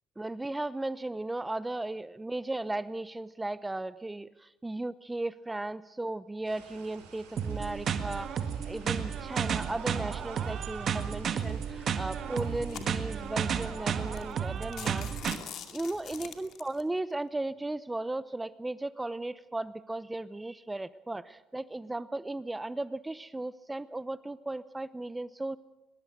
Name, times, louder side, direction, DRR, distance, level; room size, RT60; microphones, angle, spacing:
voice 1, 0.2-15.1 15.7-25.6, right 2 dB, 15° right, 16 dB, 0.8 m, -36 dB
sound 1, 6.4-14.3, right 5 dB, 85° right, 6.1 m, -52 dB
sound 2, 7.4-15.4, right 7 dB, 50° right, 1.7 m, -32 dB
sound 3, 11.4-11.7 12.3-13.3 13.8-13.9 14.2-14.3 14.6-16.8, left 9 dB, 60° left, 2.3 m, -44 dB
22.0 x 21.0 x 6.7 m, 0.96 s
hypercardioid pair, 65°, 0 cm